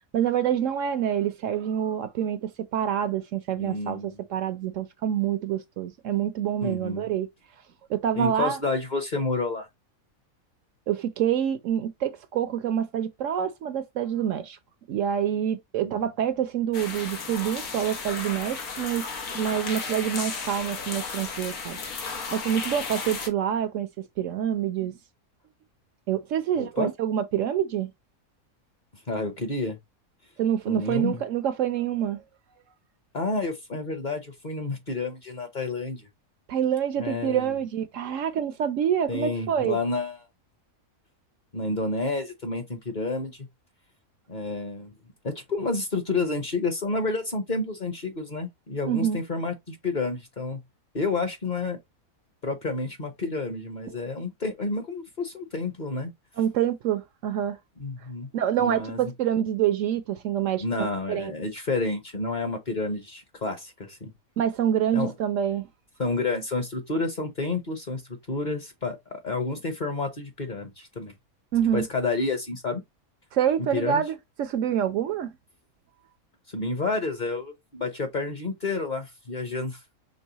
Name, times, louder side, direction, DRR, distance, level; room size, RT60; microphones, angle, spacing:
voice 1, 0.1-7.3 7.9-8.6 10.9-14.6 14.9-21.8 22.3-23.9 24.2-25.0 26.1-27.9 30.4-32.2 36.5-39.8 48.9-49.2 56.4-57.6 58.3-61.3 64.4-65.7 71.5-71.8 73.3-75.3, right 9 dB, 70° right, 0.9 m, -26 dB
voice 2, 3.6-4.1 6.6-7.1 8.1-9.7 15.8-15.9 26.6-26.9 29.1-29.8 30.7-31.2 33.1-36.1 37.0-37.5 39.1-40.2 41.5-43.5 44.3-44.9 45.2-50.6 50.9-51.8 52.4-56.1 57.8-58.3 58.6-59.0 60.6-64.1 64.9-65.1 66.0-68.0 68.3-71.1 71.7-72.8 73.6-74.0 76.5-79.8, left 3 dB, 40° left, 0.9 m, -30 dB
sound 1, 16.7-23.3, left 4 dB, 90° left, 1.7 m, -34 dB
5.4 x 3.4 x 2.8 m
omnidirectional pair, 1.5 m